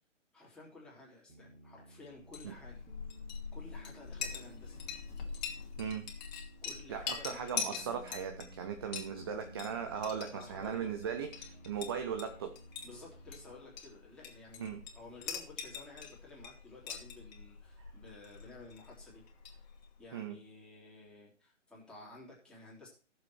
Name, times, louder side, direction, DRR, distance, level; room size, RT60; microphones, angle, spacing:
voice 1, 0.3-2.8 3.5-4.8 6.6-8.0 10.3-10.9 12.8-19.2 19.5-19.6 20.0-22.9, left 2 dB, ahead, -5 dB, 3.3 m, -53 dB
Piano, 1.3-13.8, right 1 dB, 90° right, 3.3 m, -56 dB
Chink clink, 2.2-20.0, left 6 dB, 35° left, 2.4 m, -44 dB
voice 2, 5.8-6.1 6.9-12.6 14.6-14.8 17.8-17.9 20.1-20.4, right 7 dB, 20° right, 6 dB, 0.6 m, -38 dB
15.0 x 7.2 x 4.5 m, 0.38 s
figure-of-eight pair, 135°, 37 cm